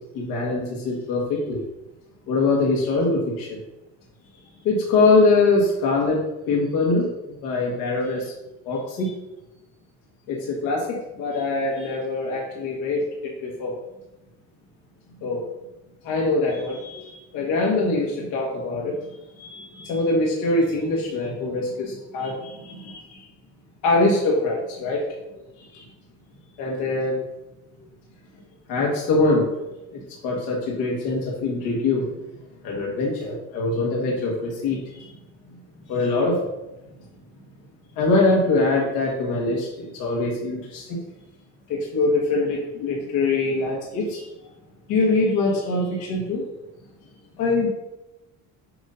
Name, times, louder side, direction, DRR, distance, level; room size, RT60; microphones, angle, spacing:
voice 1, 0.1-1.6 2.3-3.6 4.6-6.2 6.5-7.1 7.4-8.3 8.6-9.1 10.3-10.8 11.2-13.7 15.2-15.4 16.0-18.9 19.4-23.2 23.8-25.0 25.7-25.8 26.6-27.2 28.7-29.5 29.9-32.1 32.6-35.1 35.9-36.4 38.0-41.0 41.7-44.2 44.9-46.4 47.4-47.7, left 3 dB, 85° left, -3 dB, 1.6 m, -23 dB
7.7 x 2.6 x 5.6 m, 0.96 s
cardioid pair, 180°, 33 cm